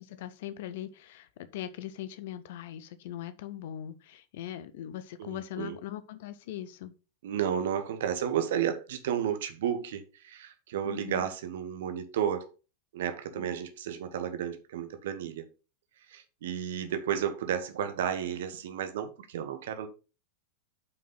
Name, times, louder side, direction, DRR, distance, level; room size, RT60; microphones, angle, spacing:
voice 1, 0.0-6.9 10.8-11.3 13.3-13.5, left 12 dB, 55° left, 0.9 m, -40 dB
voice 2, 5.2-5.8 7.2-12.5 12.9-15.5 16.1-19.9, right 9 dB, 55° right, 1.2 m, -32 dB
8.6 x 5.6 x 3.9 m
figure-of-eight pair, 90°, 0 cm